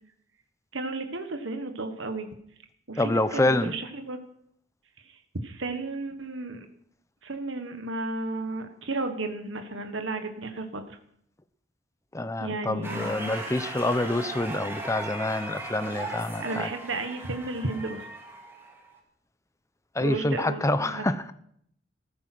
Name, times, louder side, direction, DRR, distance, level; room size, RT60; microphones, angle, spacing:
voice 1, 0.7-2.3 2.9-4.2 5.4-6.7 7.2-10.8 12.4-13.4 16.4-18.0 20.0-21.0, right 2 dB, 90° right, 1.5 m, -33 dB
voice 2, 3.0-3.8 12.1-16.7 19.9-21.2, left 1 dB, 15° left, 0.7 m, -27 dB
sound 1, 12.8-19.0, right 2 dB, 15° right, 3.3 m, -38 dB
15.0 x 13.5 x 6.2 m
head